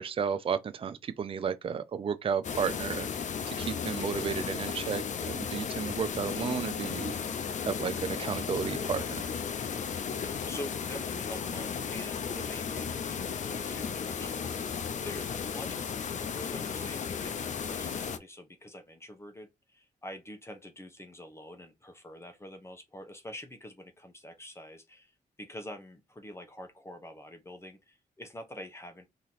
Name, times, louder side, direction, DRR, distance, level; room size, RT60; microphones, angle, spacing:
voice 1, 0.0-3.1 3.5-9.2, right 7 dB, 40° right, 0.5 m, -33 dB
sound 1, 2.4-18.2, left 6 dB, 55° left, 0.6 m, -35 dB
voice 2, 10.2-25.1 25.4-29.1, left 1 dB, 20° left, 1.0 m, -46 dB
3.0 x 2.9 x 4.0 m
cardioid pair, 85°, 14 cm